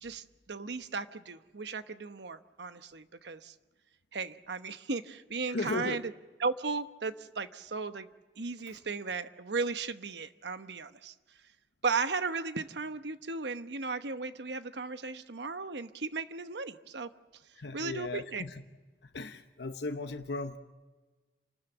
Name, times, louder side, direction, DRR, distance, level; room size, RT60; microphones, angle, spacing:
voice 1, 0.0-3.5 4.1-6.0 6.4-8.1 8.4-11.1 11.8-17.1 17.7-18.4, right 4 dB, 80° right, 10 dB, 1.0 m, -36 dB
voice 2, 5.5-6.0 8.7-8.8 17.6-18.6 19.0-20.6, left 3 dB, 75° left, 6 dB, 1.0 m, -37 dB
28.0 x 13.0 x 9.1 m, 1.3 s
head